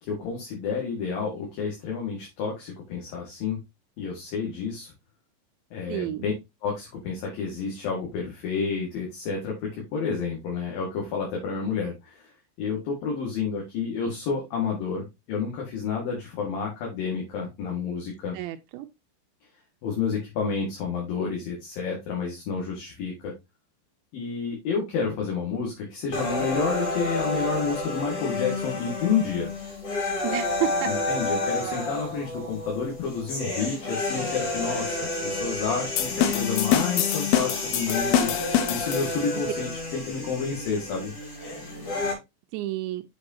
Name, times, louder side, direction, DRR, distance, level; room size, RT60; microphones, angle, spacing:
voice 1, 0.0-3.6 4.0-4.9 5.7-6.3 6.6-12.3 12.6-18.4 19.8-23.3 24.1-29.5 30.8-41.1, left 5 dB, 55° left, 3.3 m, -30 dB
voice 2, 5.9-6.3 18.3-18.9 30.2-30.9 42.5-43.0, right 15 dB, 80° right, 2.8 m, -30 dB
sound 1, 26.1-42.1, left 2 dB, 30° left, 4.1 m, -30 dB
sound 2, 36.0-39.4, left 10 dB, 80° left, 2.2 m, -25 dB
8.0 x 6.5 x 2.8 m
omnidirectional pair, 5.5 m